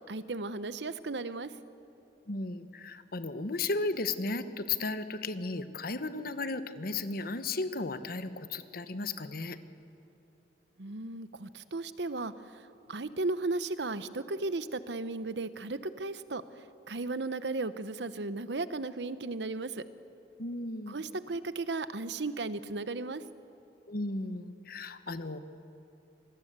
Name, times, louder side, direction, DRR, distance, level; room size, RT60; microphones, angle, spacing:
voice 1, 0.1-1.5 10.8-16.4 16.9-19.8 20.9-23.2, right 3 dB, 75° right, 13 dB, 0.9 m, -35 dB
voice 2, 2.3-9.6 20.4-21.0 23.9-25.4, left 3 dB, 60° left, 11 dB, 1.2 m, -35 dB
27.0 x 19.5 x 8.1 m, 2.8 s
head